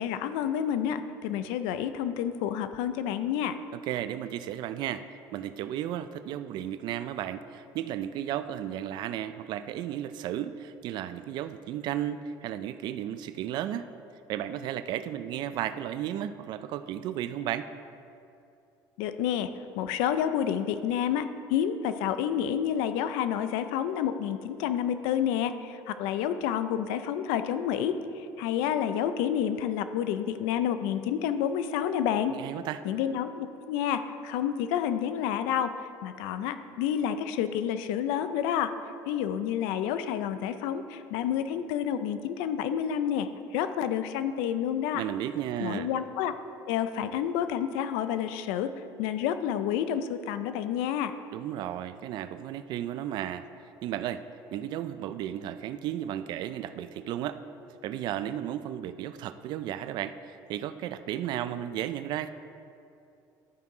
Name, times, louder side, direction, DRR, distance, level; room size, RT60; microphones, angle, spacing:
voice 1, 0.0-3.6 19.0-19.5 19.8-32.3 32.8-38.7 39.1-45.0 45.6-46.3 46.7-48.7 49.0-51.1, left 9 dB, 90° left, 11 dB, 0.5 m, -29 dB
voice 2, 3.7-5.0 5.3-13.9 14.3-17.7 32.3-32.8 44.9-45.9 51.3-53.4 53.8-54.2 54.5-57.4 57.8-62.3, right 11 dB, 60° right, 12 dB, 0.4 m, -34 dB
12.0 x 5.4 x 4.8 m, 2.6 s
cardioid pair, 135°, 9 cm